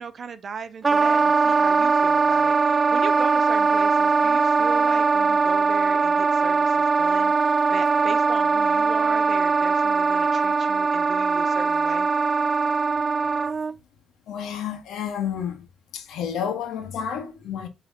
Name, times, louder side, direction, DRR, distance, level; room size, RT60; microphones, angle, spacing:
voice 1, 0.0-12.1, right 6 dB, 50° right, 0.8 m, -37 dB
Wind instrument woodwind instrument, 0.8-13.7, right 4 dB, 30° right, 0.3 m, -21 dB
voice 2, 14.3-15.7 15.9-17.7, left 8 dB, 80° left, 1.4 m, -30 dB
8.2 x 3.4 x 3.6 m
cardioid pair, 90°, 0 cm